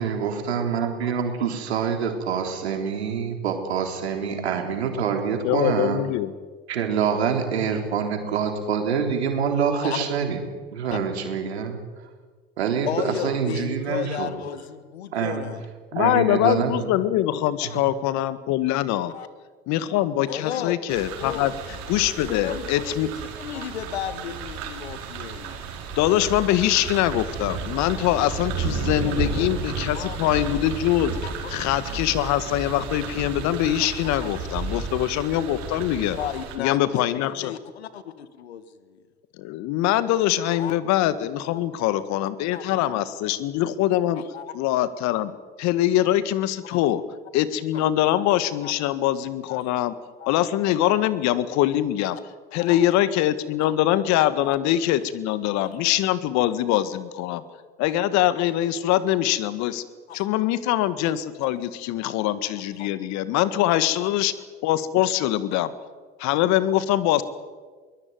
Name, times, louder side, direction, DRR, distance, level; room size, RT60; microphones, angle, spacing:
voice 1, 0.0-6.0 6.7-10.4 10.7-11.8 12.6-14.3 15.1-15.4 15.9-16.7, right 7 dB, 85° right, 5 dB, 3.7 m, -26 dB
voice 2, 5.4-6.3 15.9-19.1 19.7-21.5 21.9-23.1 26.0-31.2 31.5-36.2 36.6-37.5 39.4-44.2 44.5-45.3 45.6-47.0 47.3-50.0 50.3-52.2 52.5-57.4 57.8-59.8 60.1-64.3 64.6-65.7 66.2-67.2, left 13 dB, 60° left, 14 dB, 1.8 m, -23 dB
voice 3, 12.9-15.7 17.7-17.8 19.1-19.3 20.3-20.8 21.2-21.5 22.3-22.8 23.4-25.6 29.1-29.5 29.9-30.2 31.2-31.3 34.5-34.8 36.2-36.9 37.4-39.0 40.5-40.8 41.5-41.6 42.2-42.7 44.1-44.5 46.7-46.9 48.6-48.7 49.5-49.6 50.2-50.3 52.6-52.9 53.6-53.8 54.4-54.6 60.1-60.2 62.8-62.9 63.7-63.8, left 10 dB, 85° left, 13 dB, 1.6 m, -34 dB
sound 1, 20.9-36.6, right 5 dB, 55° right, 4.9 m, -33 dB
22.5 x 19.0 x 9.4 m, 1.4 s
hypercardioid pair, 75°, 32 cm